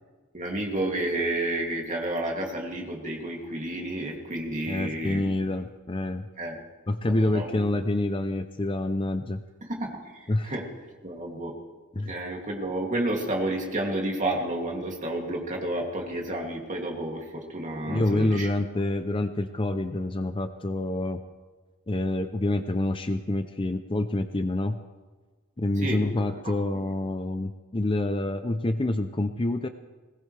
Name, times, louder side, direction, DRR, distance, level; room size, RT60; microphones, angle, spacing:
voice 1, 0.3-5.2 6.4-6.6 7.1-7.7 9.6-10.7 11.0-11.5 11.9-18.5 25.8-26.0 26.3-26.5, right 1 dB, 35° right, -1 dB, 2.8 m, -31 dB
voice 2, 4.7-6.3 6.9-9.4 10.3-10.5 12.0-12.1 17.9-21.2 21.9-24.8 25.6-29.7, left 2 dB, 25° left, 8 dB, 0.6 m, -27 dB
21.5 x 18.5 x 3.4 m, 1.3 s
head